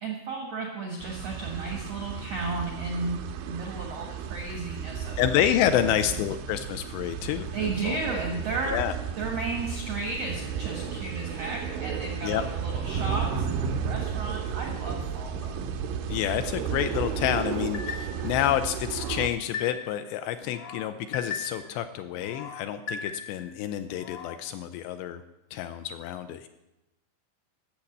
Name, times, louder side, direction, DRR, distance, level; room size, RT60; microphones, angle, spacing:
voice 1, 0.0-5.2 5.8-6.0 7.5-8.8 9.2-15.6, right 3 dB, 70° right, 1 dB, 1.5 m, -34 dB
sound 1, 1.0-19.3, right 7 dB, 90° right, 3.3 m, -33 dB
voice 2, 5.2-8.0 8.7-8.9 12.2-12.4 16.1-25.2 25.5-26.5, left 11 dB, 80° left, 9 dB, 2.6 m, -28 dB
sound 2, 17.7-18.3 18.8-20.0 20.4-21.7 22.1-23.5 23.9-24.4, left 5 dB, 65° left, 1.6 m, -38 dB
12.5 x 7.3 x 7.9 m, 0.96 s
omnidirectional pair, 5.4 m